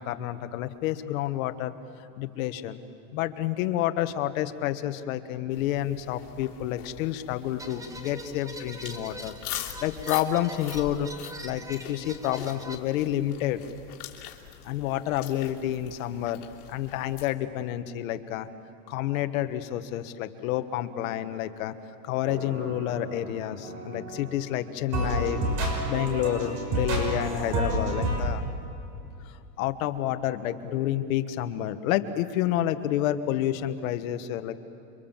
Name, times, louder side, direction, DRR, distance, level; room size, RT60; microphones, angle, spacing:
voice 1, 0.0-1.7 2.2-2.8 3.1-13.6 14.6-16.4 16.7-18.5 18.9-21.7 22.0-25.4 25.7-28.4 29.2-34.5, left 12 dB, 60° left, 9 dB, 1.5 m, -29 dB
sound 1, 5.5-17.3, left 12 dB, 75° left, 3.2 m, -43 dB
sound 2, 7.6-12.8, right 1 dB, 5° right, 1.1 m, -42 dB
sound 3, 22.3-24.5 24.9-28.2, right 1 dB, 40° right, 5.9 m, -30 dB
29.5 x 24.5 x 7.4 m, 2.8 s
supercardioid pair, 155°, 45 cm